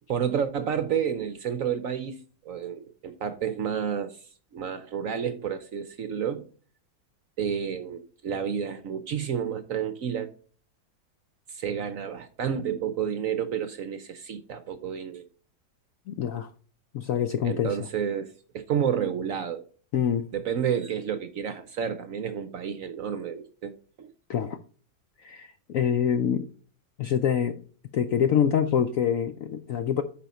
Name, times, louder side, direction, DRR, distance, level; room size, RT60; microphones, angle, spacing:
voice 1, 0.1-4.2 4.5-6.5 7.4-10.3 11.5-15.2 17.4-19.7 20.3-24.1, right 8 dB, 60° right, 0.9 m, -30 dB
voice 2, 16.1-16.5 16.9-17.8 19.9-20.3 24.3-24.6 25.2-26.5 27.0-27.6 27.9-30.0, left 8 dB, 70° left, 0.8 m, -25 dB
8.6 x 5.5 x 4.1 m
omnidirectional pair, 2.0 m